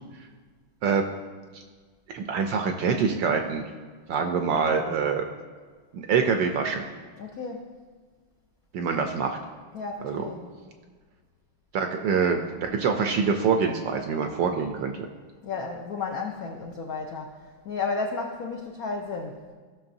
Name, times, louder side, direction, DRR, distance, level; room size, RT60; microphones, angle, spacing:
voice 1, 2.1-3.7 4.1-5.3 5.9-6.8 8.7-9.4 10.0-10.3 11.7-15.1, right 5 dB, 75° right, 5 dB, 1.1 m, -25 dB
voice 2, 7.2-7.7 9.7-10.5 15.4-19.4, left 4 dB, 75° left, 2 dB, 0.8 m, -33 dB
15.0 x 6.1 x 2.6 m, 1.5 s
omnidirectional pair, 2.4 m